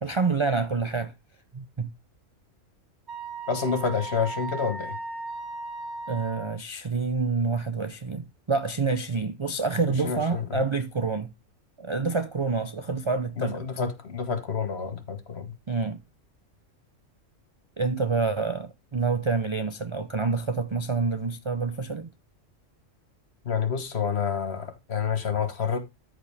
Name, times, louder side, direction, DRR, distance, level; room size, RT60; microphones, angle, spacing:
voice 1, 0.0-1.1 1.5-1.9 6.1-11.3 11.8-13.6 15.7-16.0 17.8-22.1, right 4 dB, 40° right, 0.4 m, -27 dB
Wind instrument woodwind instrument, 3.1-6.6, right 2 dB, 60° right, 2.2 m, -36 dB
voice 2, 3.5-5.0 10.0-10.6 13.4-15.5 23.4-25.8, left 6 dB, 55° left, 1.5 m, -28 dB
13.0 x 5.0 x 3.4 m
omnidirectional pair, 1.3 m